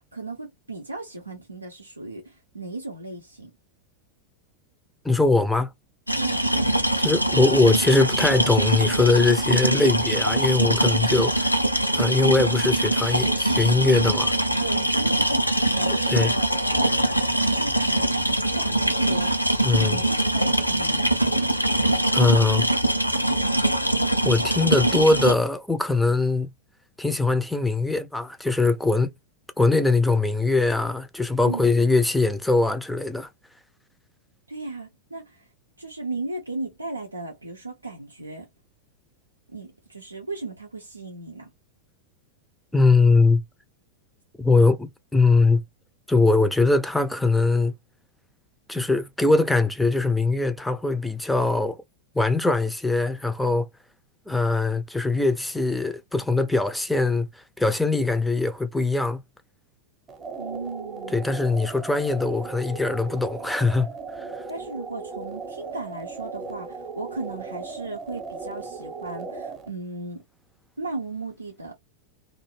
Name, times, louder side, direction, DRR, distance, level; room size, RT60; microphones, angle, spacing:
voice 1, 0.1-3.5 6.2-6.4 14.6-17.0 17.5-21.6 31.4-31.7 34.5-35.5 35.8-38.5 39.5-41.5 60.4-61.2 64.5-70.2 70.8-71.7, right 3 dB, 85° right, 0.5 m, -36 dB
voice 2, 5.0-5.7 7.0-11.5 11.9-14.3 16.1-16.3 19.6-20.0 22.1-22.6 24.2-26.5 27.0-29.1 29.6-33.3 42.7-43.4 44.4-45.6 46.1-47.7 48.7-51.8 52.1-53.7 54.3-57.3 57.6-59.2 61.1-63.9 64.2-64.3, left 3 dB, 5° left, 0.4 m, -21 dB
sound 1, 6.1-25.3, right 1 dB, 90° left, 0.4 m, -23 dB
sound 2, 60.1-69.7, right 4 dB, 20° right, 0.8 m, -37 dB
2.5 x 2.1 x 3.0 m
figure-of-eight pair, 90°, 0 cm